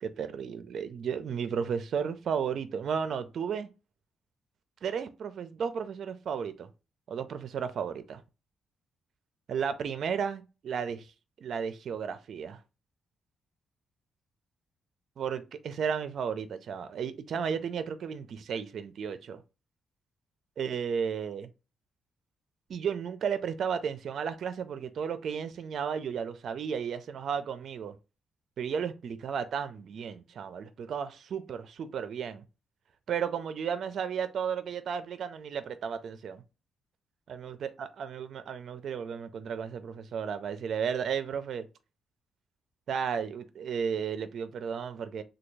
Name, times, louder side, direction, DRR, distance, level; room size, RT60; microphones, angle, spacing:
voice 1, 0.0-3.7 4.8-6.7 7.1-8.2 9.5-11.1 11.4-12.6 15.2-19.4 20.6-21.5 22.7-28.0 28.6-32.4 33.1-36.4 37.3-41.7 42.9-45.2, right 7 dB, 55° right, 0.5 m, -33 dB
3.4 x 2.3 x 3.2 m
cardioid pair, 140°, 0 cm